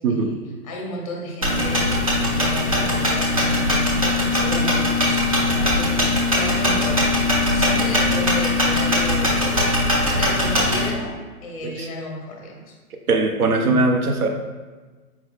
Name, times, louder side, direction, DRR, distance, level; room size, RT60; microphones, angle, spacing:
voice 1, 0.0-0.4 11.6-11.9 13.1-14.3, right 3 dB, 70° right, 3 dB, 0.6 m, -20 dB
voice 2, 0.6-7.0 7.4-9.4 10.0-11.1 11.4-12.7, left 1 dB, 25° left, 0 dB, 0.6 m, -33 dB
sound 1, 1.4-10.9, left 1 dB, 25° right, 0.4 m, -20 dB
4.5 x 2.3 x 3.5 m, 1.3 s
hypercardioid pair, 135°, 46 cm